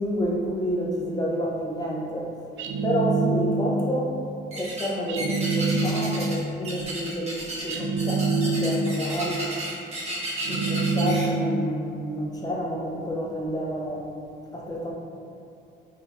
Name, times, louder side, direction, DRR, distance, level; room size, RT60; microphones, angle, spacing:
voice 1, 0.0-4.2 4.5-9.5 10.4-14.0 14.5-14.9, equal, 20° left, -2 dB, 0.6 m, -29 dB
sound 1, 2.6-3.9 5.1-6.4 7.7-9.0 10.4-11.7, right 3 dB, 75° right, 0.4 m, -25 dB
sound 2, 4.5-4.9 5.2-6.4 6.6-11.3, right 1 dB, 35° right, 1.1 m, -33 dB
5.0 x 2.7 x 2.4 m, 2.6 s
cardioid pair, 90°, 20 cm